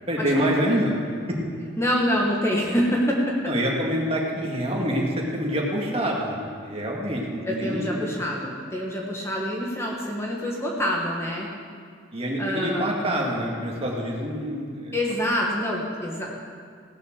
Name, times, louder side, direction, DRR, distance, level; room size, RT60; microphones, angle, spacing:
voice 1, 0.1-0.9 1.3-1.4 3.5-6.4 6.6-8.0 12.1-15.0, equal, 30° right, -1 dB, 1.8 m, -26 dB
voice 2, 1.8-3.5 7.4-11.5 12.4-12.9 14.9-16.4, equal, 15° left, -2 dB, 1.4 m, -26 dB
17.0 x 6.7 x 6.5 m, 2.2 s
head